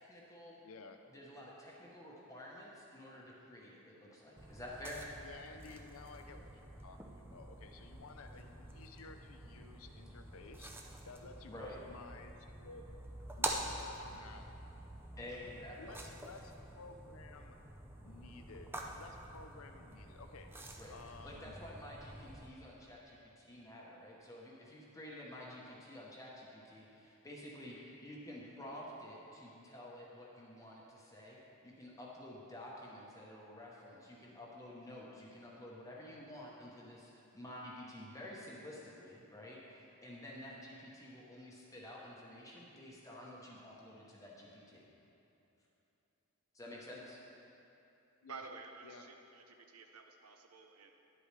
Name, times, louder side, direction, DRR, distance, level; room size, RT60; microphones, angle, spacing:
voice 1, 0.0-0.6 1.1-5.0 11.5-11.8 15.2-16.0 20.8-20.9 21.2-44.8 46.5-47.2, left 1 dB, 15° left, -4 dB, 0.9 m, -50 dB
voice 2, 0.6-1.0 5.2-12.9 13.4-14.6 15.2-17.6 18.0-21.6 48.2-48.4 48.8-49.1, left 3 dB, 75° left, 6 dB, 0.6 m, -54 dB
sound 1, 4.4-22.5, right 1 dB, 10° right, 0.5 m, -47 dB
voice 3, 48.3-50.9, right 4 dB, 90° right, 4 dB, 0.6 m, -52 dB
10.5 x 8.1 x 3.3 m, 3.0 s
head